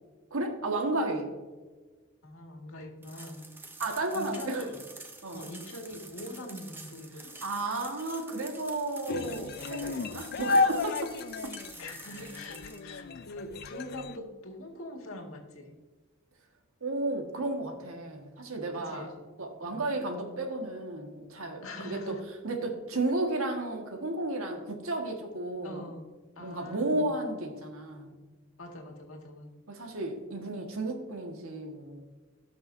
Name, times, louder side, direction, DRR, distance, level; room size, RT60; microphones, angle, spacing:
voice 1, 0.3-1.3 3.8-4.7 5.2-5.4 7.4-11.1 11.4-11.5 16.8-19.1 19.4-22.2 22.4-25.9 26.4-28.1 29.7-32.1, right 2 dB, 80° right, 3 dB, 1.6 m, -33 dB
voice 2, 2.2-3.5 4.1-4.8 5.3-7.3 11.8-15.7 18.7-19.1 19.6-19.8 21.6-22.3 25.6-26.1 26.4-27.1 28.6-29.5, left 1 dB, 80° left, 1 dB, 1.8 m, -43 dB
sound 1, 3.0-12.8, right 3 dB, 10° right, 0.7 m, -48 dB
sound 2, 9.1-14.2, left 3 dB, 45° left, 0.4 m, -32 dB
17.5 x 6.1 x 2.6 m, 1.3 s
head